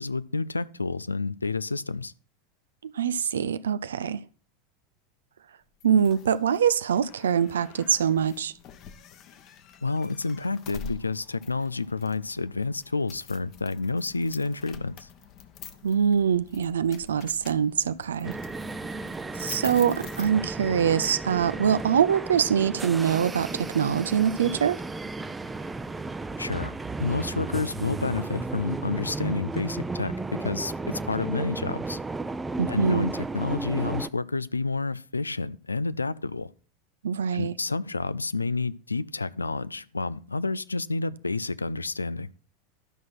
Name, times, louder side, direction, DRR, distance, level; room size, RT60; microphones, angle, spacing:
voice 1, 0.0-2.1 9.8-15.1 26.4-26.7 27.0-32.0 32.7-36.5 37.3-42.3, left 3 dB, 85° left, 0.4 m, -29 dB
voice 2, 2.8-4.2 5.8-8.5 15.8-18.3 19.3-24.8 32.6-33.1 37.0-37.5, right 8 dB, 70° right, 0.4 m, -24 dB
sound 1, 5.8-20.8, left 6 dB, 40° left, 1.2 m, -47 dB
sound 2, 18.2-34.1, right 3 dB, 15° right, 0.7 m, -34 dB
12.0 x 6.1 x 5.8 m
figure-of-eight pair, 85°, 0 cm